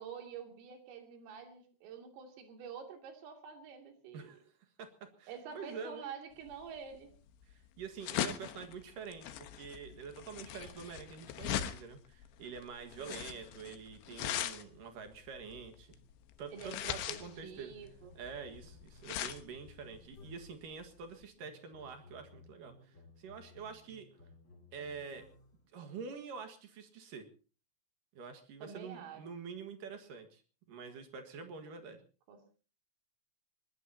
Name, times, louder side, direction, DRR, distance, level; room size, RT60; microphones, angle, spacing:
voice 1, 0.0-4.4 5.3-7.1 13.0-13.3 16.5-18.1 28.6-29.2 32.3-32.4, right 7 dB, 80° right, 5 dB, 5.2 m, -48 dB
voice 2, 4.1-4.5 4.8-6.1 7.5-16.0 16.4-17.7 18.2-24.1 24.7-25.3 25.7-27.3 28.2-30.4 30.7-32.0, right 5 dB, 60° right, 7 dB, 2.4 m, -46 dB
sound 1, 6.5-21.3, left 11 dB, 70° left, 3.0 m, -41 dB
sound 2, 16.5-20.7 21.4-25.6, left 2 dB, 30° left, 2.3 m, -59 dB
22.5 x 20.5 x 2.8 m, 0.37 s
omnidirectional pair, 5.8 m